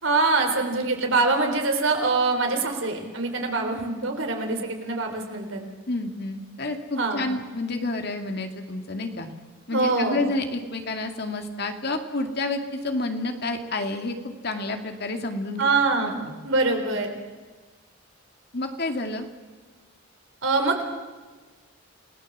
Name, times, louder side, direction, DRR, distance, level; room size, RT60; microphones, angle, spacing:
voice 1, 0.0-5.6 7.0-7.3 9.7-10.2 15.6-17.1 20.4-20.8, right 3 dB, 70° right, 4 dB, 4.2 m, -24 dB
voice 2, 5.9-9.3 9.7-15.6 16.0-16.3 18.5-19.3, left 2 dB, 50° left, 5 dB, 2.3 m, -29 dB
28.5 x 18.5 x 7.4 m, 1.3 s
head